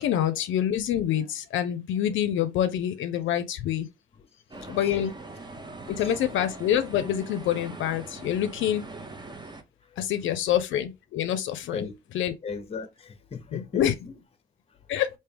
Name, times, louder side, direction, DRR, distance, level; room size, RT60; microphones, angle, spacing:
voice 1, 0.0-3.9 4.7-5.1 5.9-8.9 10.0-11.9 12.1-12.3 13.5-13.9 14.9-15.1, left 10 dB, 75° left, 0.5 m, -26 dB
voice 2, 4.2-5.0 5.8-6.2 9.8-10.1 11.7-11.9 12.4-14.2 14.7-14.8, left 5 dB, 30° left, 0.8 m, -38 dB
sound 1, 4.5-9.6, right 2 dB, 20° right, 0.7 m, -42 dB
3.3 x 2.7 x 3.3 m
cardioid pair, 90°, 20 cm